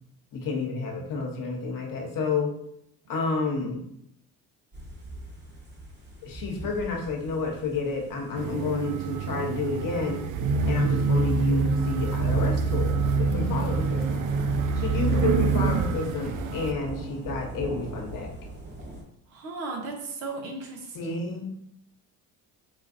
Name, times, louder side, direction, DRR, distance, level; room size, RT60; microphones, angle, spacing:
voice 1, 0.3-2.5 3.1-3.8 6.2-10.2 10.7-14.2 14.7-18.3 20.9-21.6, left 4 dB, 50° left, 2 dB, 1.0 m, -30 dB
sound 1, 4.7-19.0, right 1 dB, 25° right, 1.2 m, -40 dB
sound 2, 8.4-16.7, right 4 dB, 45° right, 0.4 m, -26 dB
voice 2, 13.3-13.6 19.3-21.2, right 2 dB, 75° right, 1 dB, 1.0 m, -36 dB
5.0 x 2.5 x 2.5 m, 0.74 s
hypercardioid pair, 60°, 43 cm